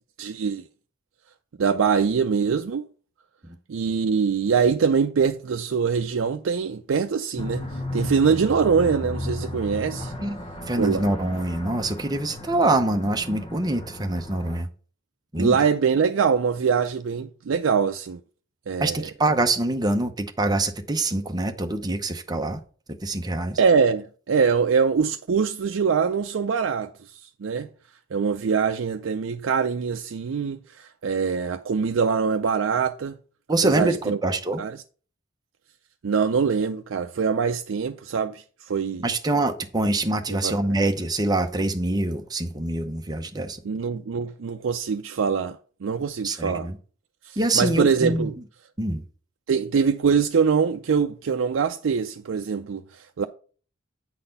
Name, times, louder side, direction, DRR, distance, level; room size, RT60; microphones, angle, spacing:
voice 1, 0.2-0.6 1.6-2.8 3.7-10.1 10.7-11.0 15.4-18.2 18.7-19.1 23.6-27.7 28.1-33.2 33.6-34.2 34.6-34.8 36.0-39.1 40.3-40.5 43.6-46.7 47.3-48.3 49.5-53.3, right 6 dB, 90° right, 0.4 m, -23 dB
sound 1, 7.4-14.6, left 1 dB, 30° left, 0.9 m, -34 dB
voice 2, 10.7-14.7 15.3-15.6 18.8-22.6 23.0-23.6 33.5-34.6 39.0-43.6 46.2-46.8 47.4-48.3 48.8-49.0, right 2 dB, 20° right, 0.8 m, -25 dB
8.8 x 4.1 x 5.4 m
head